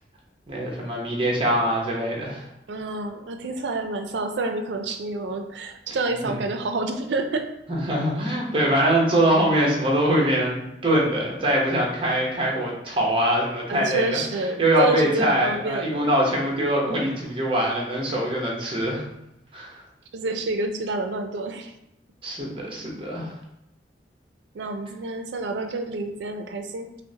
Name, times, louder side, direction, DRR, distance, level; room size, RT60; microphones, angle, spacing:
voice 1, 0.5-2.4 6.2-6.3 7.7-14.2 14.6-19.0 19.5-19.7 22.2-23.3, right 1 dB, 30° right, -2 dB, 0.9 m, -23 dB
voice 2, 2.7-7.5 13.7-16.1 20.1-21.7 24.5-26.9, right 2 dB, 80° right, 6 dB, 0.4 m, -28 dB
5.4 x 2.1 x 2.8 m, 0.86 s
head